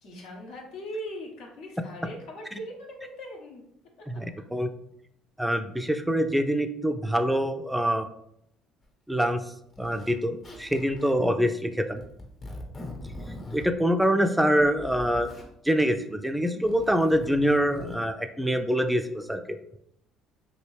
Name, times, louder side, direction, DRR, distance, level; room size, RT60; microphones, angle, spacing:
voice 1, 0.0-3.6 4.0-4.1, equal, 75° left, 0 dB, 0.9 m, -40 dB
voice 2, 4.1-4.7 5.4-8.1 9.1-12.0 13.5-15.3 15.6-19.6, equal, 5° right, 7 dB, 0.3 m, -25 dB
Zipper (clothing), 8.8-8.9 9.7-10.1 10.4-11.3 12.0-13.7 14.4-15.5 16.5-18.0, left 1 dB, 40° left, 1.0 m, -42 dB
2.9 x 2.7 x 3.1 m, 0.75 s
hypercardioid pair, 65°, 0 cm